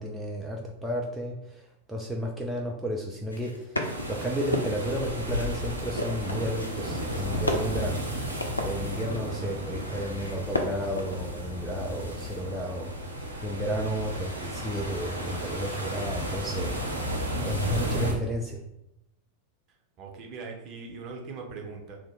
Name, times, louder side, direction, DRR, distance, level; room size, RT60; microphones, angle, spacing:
voice 1, 0.0-3.8 4.1-12.9 13.4-16.7 17.4-18.6, equal, 5° right, -2 dB, 0.3 m, -32 dB
sound 1, 3.1-11.9 12.5-13.1, left 1 dB, 80° left, 0.3 m, -34 dB
sound 2, 3.8-18.1, equal, 85° right, 0.5 m, -33 dB
voice 2, 20.0-22.0, right 4 dB, 35° right, 1 dB, 0.6 m, -40 dB
2.7 x 2.0 x 3.3 m, 0.82 s
figure-of-eight pair, 90°, 0 cm